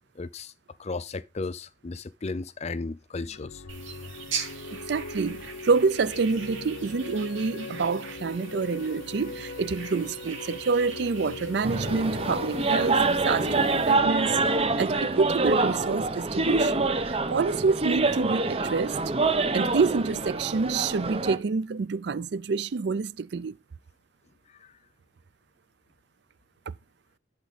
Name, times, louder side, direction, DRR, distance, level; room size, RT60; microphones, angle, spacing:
voice 1, 0.2-0.5 0.8-3.6 24.5-24.7, left 3 dB, 35° left, 0.5 m, -35 dB
sound 1, 3.2-15.9, left 4 dB, 90° left, 0.6 m, -41 dB
sound 2, 3.7-13.9, right 6 dB, 85° right, 3.6 m, -41 dB
voice 2, 4.7-19.0 19.5-23.6, right 4 dB, 60° right, 0.4 m, -27 dB
sound 3, 11.6-21.4, right 3 dB, 30° right, 0.8 m, -26 dB
12.0 x 7.1 x 4.1 m
head